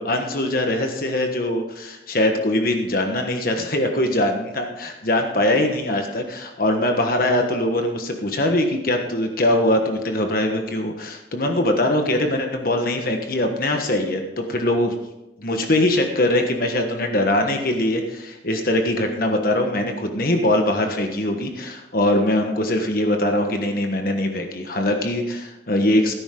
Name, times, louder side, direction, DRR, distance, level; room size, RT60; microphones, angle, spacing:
voice 1, 0.0-14.9 15.4-26.1, left 1 dB, 55° left, 4 dB, 1.4 m, -22 dB
17.5 x 10.0 x 3.8 m, 0.98 s
head